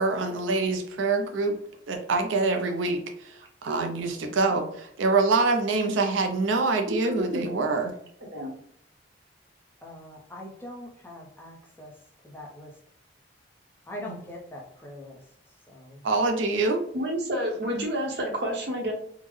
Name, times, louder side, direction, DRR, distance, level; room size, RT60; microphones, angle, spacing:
voice 1, 0.0-1.6 1.9-7.9 16.0-16.8, right 3 dB, 75° right, 4 dB, 0.4 m, -25 dB
voice 2, 6.9-7.4 8.3-8.5 16.9-18.9, equal, 55° right, 0 dB, 0.8 m, -29 dB
voice 3, 9.8-12.8 13.9-16.0, left 1 dB, 10° left, -2 dB, 0.5 m, -43 dB
3.6 x 2.0 x 3.1 m, 0.68 s
head